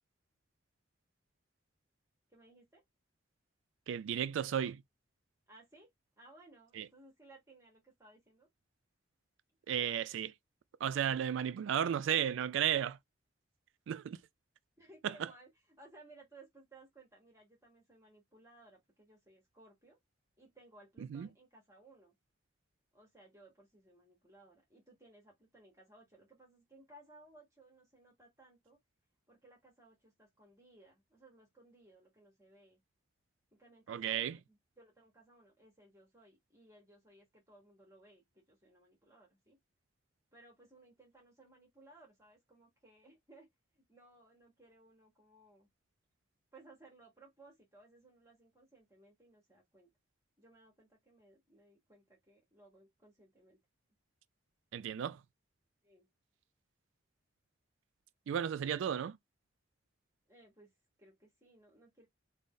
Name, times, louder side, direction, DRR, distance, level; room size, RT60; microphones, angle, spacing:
voice 1, 2.3-2.8 5.5-8.5 14.8-20.0 20.4-22.1 22.9-28.8 29.3-32.8 33.5-39.6 40.3-43.5 43.7-45.7 46.5-49.9 50.4-53.6 55.8-56.1 60.3-62.1, right 2 dB, 15° right, 1.0 m, -61 dB
voice 2, 3.9-4.8 6.8-6.9 9.7-10.3 10.8-13.0 13.9-14.2 15.0-15.3 21.1-21.3 33.9-34.4 54.7-55.2 58.3-59.2, right 9 dB, 80° right, 0.3 m, -34 dB
2.6 x 2.0 x 3.5 m
head